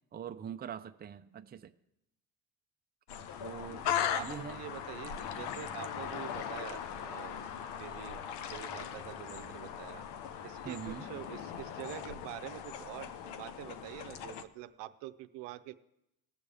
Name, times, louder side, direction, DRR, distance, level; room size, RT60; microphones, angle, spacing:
voice 1, 0.1-1.7 3.4-3.8 4.2-4.6 10.6-11.1, right 8 dB, 25° right, 8 dB, 0.5 m, -43 dB
sound 1, 3.1-14.4, left 8 dB, 80° left, 0.9 m, -39 dB
voice 2, 3.8-7.4 7.8-10.0 10.4-15.7, right 15 dB, 85° right, 9 dB, 0.7 m, -46 dB
19.5 x 6.9 x 3.4 m, 0.85 s
cardioid pair, 110°, 42 cm